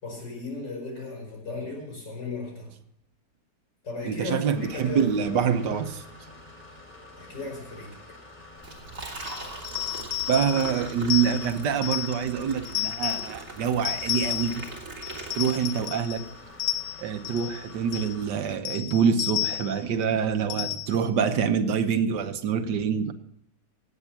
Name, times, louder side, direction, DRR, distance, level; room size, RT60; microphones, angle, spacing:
voice 1, 0.0-2.7 3.8-5.4 7.2-8.0, left 3 dB, 80° left, 6.0 m, -36 dB
voice 2, 4.0-6.0 10.3-14.6 15.3-16.2 17.0-23.1, right 7 dB, 80° right, 1.6 m, -26 dB
sound 1, 4.5-18.3, left 2 dB, 25° left, 2.9 m, -48 dB
Liquid, 8.6-16.3, right 3 dB, 45° right, 2.9 m, -41 dB
sound 2, 9.6-12.3 12.6-13.3 13.8-14.7 15.0-16.3 16.6-17.6 17.9-18.2 18.6-19.8 20.5-21.1, left 16 dB, 65° left, 1.2 m, -32 dB
18.5 x 8.0 x 5.8 m
omnidirectional pair, 1.9 m